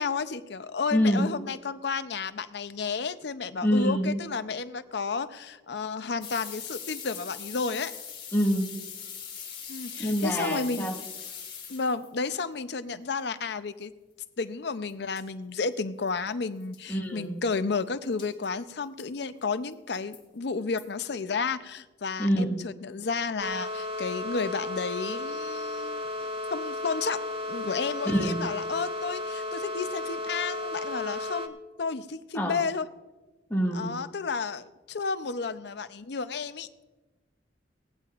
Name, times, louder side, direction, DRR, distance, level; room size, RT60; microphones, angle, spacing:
voice 1, 0.0-7.9 9.7-10.9 11.7-13.9 14.4-32.9 33.7-36.7, left 4 dB, 65° left, 12 dB, 0.6 m, -32 dB
voice 2, 0.9-1.3 3.6-4.2 8.3-8.7 10.0-10.9 16.9-17.3 22.2-22.6 28.0-28.4 32.3-32.5 33.5-33.9, equal, 10° left, -1 dB, 1.7 m, -25 dB
sound 1, 6.2-12.1 14.9-15.0 15.2-15.3 15.8-15.9 16.1-16.2 16.6-16.8 18.2-18.5 19.0-19.1 19.7-20.2 20.8-20.9, left 7 dB, 30° left, 2.7 m, -41 dB
sound 2, 23.4-31.5, left 2 dB, 30° right, 0.8 m, -34 dB
18.5 x 15.5 x 2.5 m, 1.1 s
head